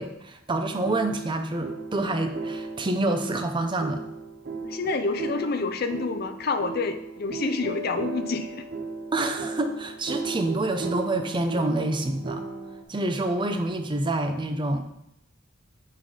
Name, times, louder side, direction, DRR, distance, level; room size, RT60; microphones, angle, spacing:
voice 1, 0.0-4.0 9.1-12.4 12.9-14.8, right 2 dB, 25° right, 7 dB, 0.5 m, -27 dB
sound 1, 0.5-12.8, right 4 dB, 50° right, 0.8 m, -36 dB
voice 2, 4.6-8.7, left 4 dB, 50° left, 9 dB, 0.5 m, -28 dB
8.1 x 3.8 x 4.8 m, 0.81 s
head